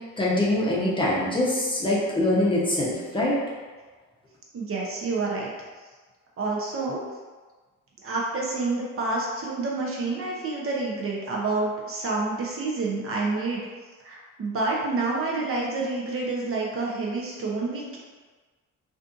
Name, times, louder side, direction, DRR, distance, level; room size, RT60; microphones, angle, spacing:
voice 1, 0.2-3.4, left 1 dB, 15° left, -6 dB, 0.7 m, -24 dB
voice 2, 4.5-5.5 6.4-7.0 8.0-13.6 14.0-18.0, right 3 dB, 45° right, -3 dB, 0.6 m, -28 dB
2.5 x 2.4 x 2.4 m, 1.4 s
cardioid pair, 90°, 30 cm